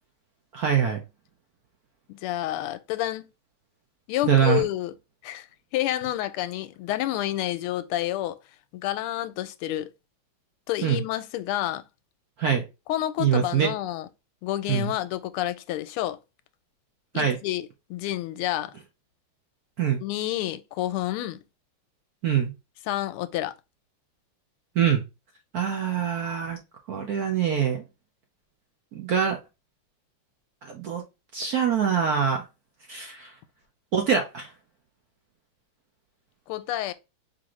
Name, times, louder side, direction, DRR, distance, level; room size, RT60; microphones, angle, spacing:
voice 1, 0.5-1.0 4.2-4.6 10.8-11.0 12.4-12.6 13.2-13.7 14.7-14.9 17.1-17.4 19.8-20.0 22.2-22.5 24.8-25.0 25.5-26.6 26.9-27.8 28.9-29.4 30.6-31.0 31.3-32.4 32.9-33.3 33.9-34.5, right 8 dB, 60° right, 1.0 m, -24 dB
voice 2, 2.1-3.3 4.1-4.9 5.2-5.5 5.7-8.4 8.7-9.9 10.7-11.8 12.9-14.1 14.4-16.2 17.1-18.7 20.0-21.4 22.9-23.5 36.5-36.9, left 14 dB, 85° left, 1.5 m, -29 dB
5.0 x 2.7 x 3.0 m
omnidirectional pair, 2.4 m